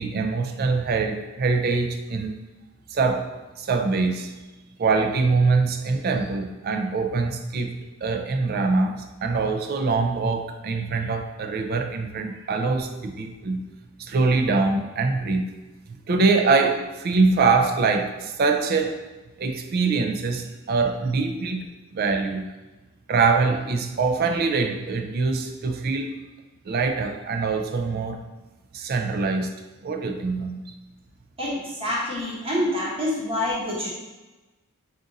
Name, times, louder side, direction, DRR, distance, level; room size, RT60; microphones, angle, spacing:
voice 1, 0.0-2.3 2.9-3.3 3.6-4.3 4.8-7.7 8.0-13.6 14.0-15.5 16.1-19.0 19.4-21.7 21.9-22.5 23.1-26.1 26.7-28.2 28.7-29.5 29.8-30.6, right 4 dB, 45° right, 5 dB, 0.4 m, -23 dB
voice 2, 31.4-33.9, left 1 dB, 25° right, -5 dB, 0.9 m, -27 dB
3.8 x 2.5 x 3.8 m, 1.1 s
head